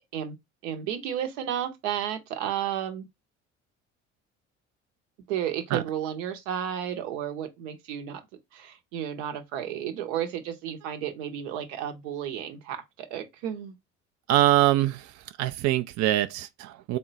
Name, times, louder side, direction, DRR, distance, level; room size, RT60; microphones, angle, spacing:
voice 1, 0.6-3.1 5.3-8.2 8.5-13.7, right 10 dB, 75° right, 0.9 m, -32 dB
voice 2, 14.3-15.1 15.4-17.0, right 14 dB, 50° right, 0.4 m, -23 dB
3.6 x 2.1 x 4.0 m
hypercardioid pair, 60°, 36 cm